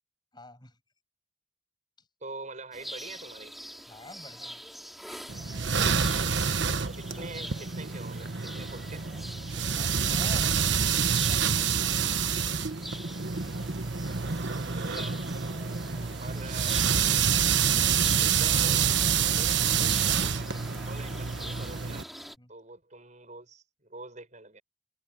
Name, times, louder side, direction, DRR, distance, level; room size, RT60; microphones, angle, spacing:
voice 1, 0.3-0.8 2.0-2.1 3.9-5.2 6.9-7.3 9.7-10.9 11.3-12.0 12.8-13.5 22.4-22.5, left 2 dB, 20° left, 7.4 m, -50 dB
voice 2, 2.2-3.5 7.0-9.0 14.3-15.2 16.2-17.2 18.2-22.0 22.5-24.6, right 3 dB, 35° right, 6.9 m, -45 dB
sound 1, 2.7-22.4, equal, ahead, 3.0 m, -45 dB
sound 2, 5.3-22.0, right 7 dB, 60° right, 1.2 m, -27 dB
head